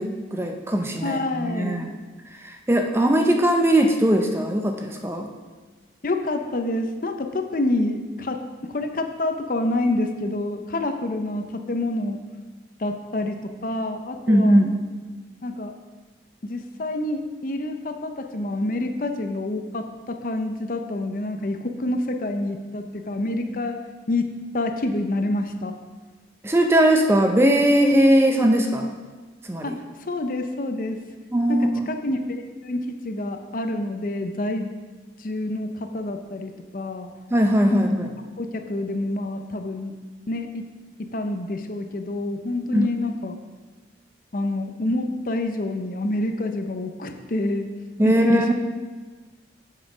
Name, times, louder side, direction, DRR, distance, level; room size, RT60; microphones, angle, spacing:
voice 1, 0.0-1.9 2.4-5.3 14.3-14.7 26.4-28.9 29.5-29.8 31.3-31.9 37.3-38.1 42.7-42.9 48.0-48.5, right 1 dB, 15° right, 3 dB, 0.5 m, -19 dB
voice 2, 1.0-1.8 6.0-12.2 12.8-14.6 15.4-15.7 16.4-23.8 24.1-24.3 24.5-25.7 29.6-29.7 30.1-31.0 31.5-31.6 31.9-32.2 32.6-34.7 35.2-37.1 37.7-37.9 38.4-39.9 40.3-40.6 41.0-43.4 44.3-47.7 48.0-48.5, left 2 dB, 45° left, 6 dB, 0.6 m, -27 dB
7.5 x 6.2 x 5.0 m, 1.3 s
head